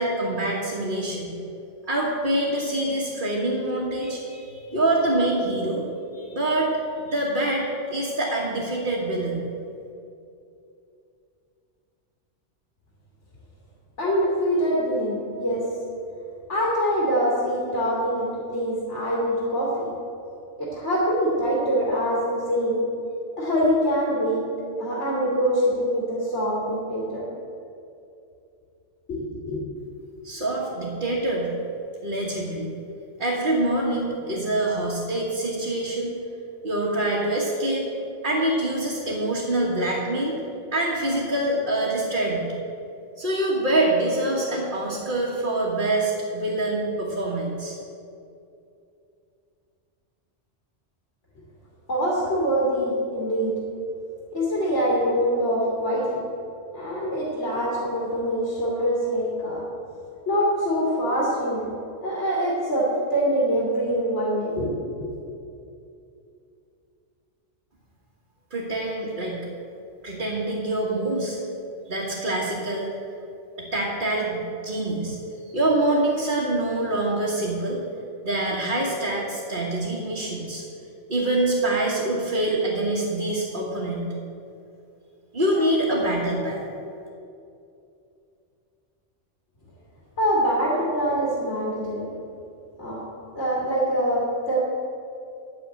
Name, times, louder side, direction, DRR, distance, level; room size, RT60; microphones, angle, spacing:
voice 1, 0.0-1.3 1.9-5.8 6.1-9.4 30.2-31.6 32.0-32.7 33.2-36.1 36.6-37.9 38.2-40.4 40.7-42.5 43.2-47.8 68.5-69.4 70.0-71.4 71.9-72.9 73.6-75.2 75.5-77.8 78.2-80.6 81.1-84.1 85.3-86.6, right 1 dB, 45° right, -6 dB, 1.8 m, -25 dB
voice 2, 14.0-15.6 16.5-19.9 20.6-22.8 23.4-24.4 24.8-27.2 29.1-29.6 51.9-53.5 54.3-56.2 56.7-59.6 60.3-61.7 62.0-64.7 65.0-65.1 90.2-92.1 92.8-93.0 93.3-94.6, equal, 75° left, -6 dB, 2.7 m, -24 dB
9.9 x 6.9 x 8.8 m, 2.6 s
omnidirectional pair, 1.2 m